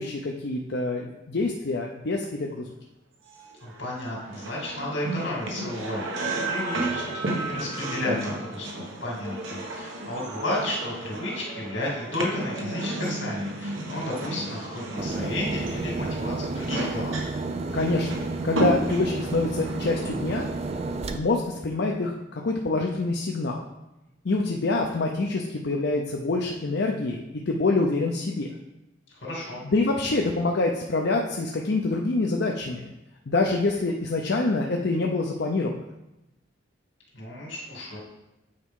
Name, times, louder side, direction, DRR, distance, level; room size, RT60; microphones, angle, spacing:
voice 1, 0.0-2.7 17.7-18.1 18.4-20.5 21.1-22.1 22.4-23.6 24.2-28.5 29.6-32.9 33.3-35.7, left 2 dB, 60° left, 1 dB, 0.6 m, -26 dB
sound 1, 3.4-20.9, right 1 dB, 85° right, 1.2 m, -33 dB
voice 2, 3.6-17.2 29.1-29.6 37.1-38.0, left 1 dB, 80° left, -3 dB, 2.5 m, -33 dB
sound 2, 15.0-21.2, right 3 dB, 35° right, 0.4 m, -31 dB
8.6 x 4.7 x 3.7 m, 0.94 s
head